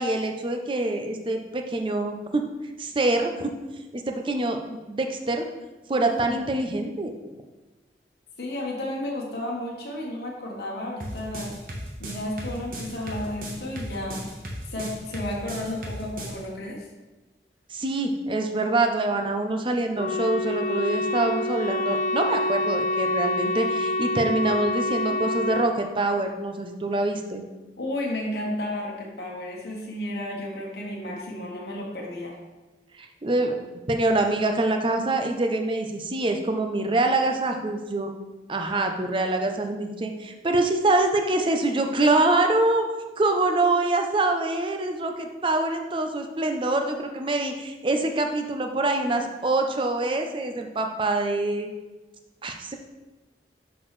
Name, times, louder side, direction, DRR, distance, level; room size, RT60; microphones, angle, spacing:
voice 1, 0.0-2.4 2.8-3.5 3.9-5.5 5.9-7.1 17.7-27.4 33.0-33.6 33.9-38.1 38.5-42.8 43.2-51.7 52.4-52.8, right 2 dB, 30° right, 4 dB, 0.5 m, -25 dB
voice 2, 8.4-11.5 12.0-14.2 14.7-16.9 27.8-32.4, left 1 dB, 60° left, -2 dB, 1.1 m, -32 dB
sound 1, 11.0-16.4, equal, 50° right, 1.1 m, -35 dB
Wind instrument woodwind instrument, 20.0-25.7, left 2 dB, 40° left, 0.4 m, -26 dB
6.1 x 6.0 x 3.2 m, 1.2 s
head